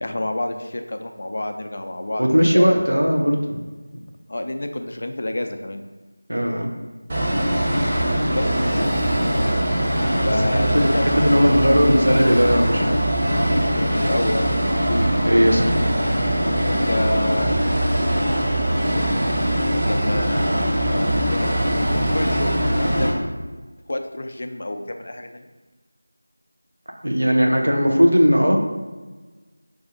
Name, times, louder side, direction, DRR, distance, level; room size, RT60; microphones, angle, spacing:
voice 1, 0.0-2.2 2.5-2.7 4.3-5.8 8.3-8.8 10.2-11.6 13.7-14.5 16.6-17.6 19.8-21.5 21.8-23.1 23.9-25.5, left 1 dB, 45° left, 6 dB, 0.4 m, -28 dB
voice 2, 2.2-3.6 6.3-6.7 10.4-13.0 14.8-15.8 27.0-28.6, equal, 80° right, 2 dB, 0.8 m, -18 dB
sound 1, 7.1-23.1, equal, 30° right, 1.1 m, -21 dB
4.8 x 2.7 x 3.8 m, 1.3 s
figure-of-eight pair, 170°, 0 cm